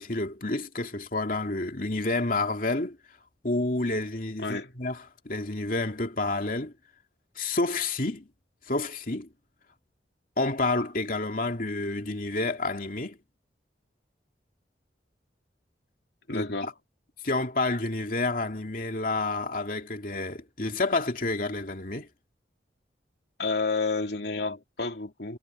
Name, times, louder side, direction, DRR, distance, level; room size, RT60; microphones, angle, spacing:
voice 1, 0.0-3.0 3.4-6.7 7.4-8.3 8.7-9.3 10.4-13.2 16.3-16.5 17.2-22.1, left 2 dB, 50° left, 2.8 m, -29 dB
voice 2, 4.4-4.7 16.3-16.7 23.4-25.4, left 3 dB, 70° left, 2.5 m, -30 dB
head